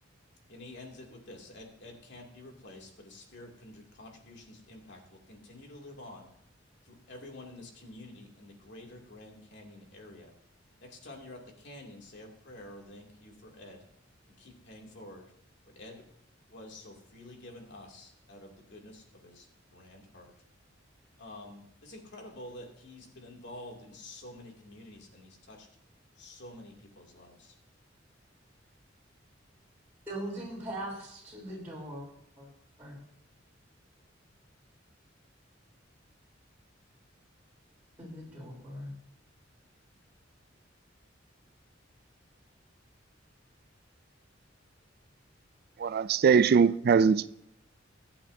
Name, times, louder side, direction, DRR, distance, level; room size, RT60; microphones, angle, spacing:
voice 1, 0.5-6.3 6.8-10.3 10.8-13.9 14.4-15.3 15.7-16.0 16.5-19.5 19.7-20.3 21.2-25.7 26.2-27.6, left 1 dB, 65° left, 2.6 m, -49 dB
voice 2, 30.1-32.0 32.4-32.5 32.8-33.0 38.0-38.9, right 1 dB, 10° right, 3.6 m, -40 dB
voice 3, 45.8-47.3, right 6 dB, 55° right, 0.3 m, -22 dB
24.0 x 8.7 x 2.7 m
head